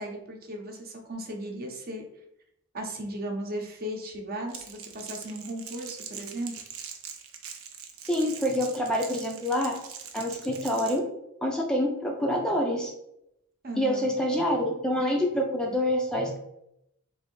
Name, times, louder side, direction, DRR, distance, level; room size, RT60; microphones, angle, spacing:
voice 1, 0.0-2.0 2.7-6.5 13.6-14.1, right 1 dB, 45° right, 1 dB, 0.8 m, -36 dB
Crackle, 4.5-11.0, right 7 dB, 80° right, 0.6 m, -42 dB
voice 2, 8.0-9.7 10.1-11.0 11.4-12.9 13.8-16.4, equal, 5° left, 0 dB, 0.4 m, -26 dB
3.3 x 2.7 x 4.5 m, 0.81 s
head